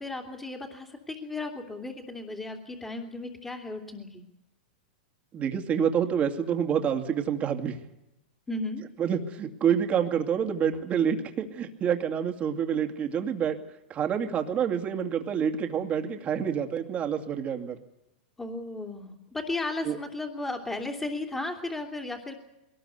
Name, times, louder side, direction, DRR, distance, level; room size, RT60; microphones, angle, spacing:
voice 1, 0.0-4.2 8.5-8.8 18.4-22.3, left 2 dB, 10° left, -2 dB, 2.9 m, -35 dB
voice 2, 5.3-7.8 9.0-13.6 13.9-17.8 19.8-20.0, right 8 dB, 25° right, 4 dB, 2.4 m, -27 dB
21.5 x 19.5 x 8.2 m, 0.90 s
hypercardioid pair, 135°, 5 cm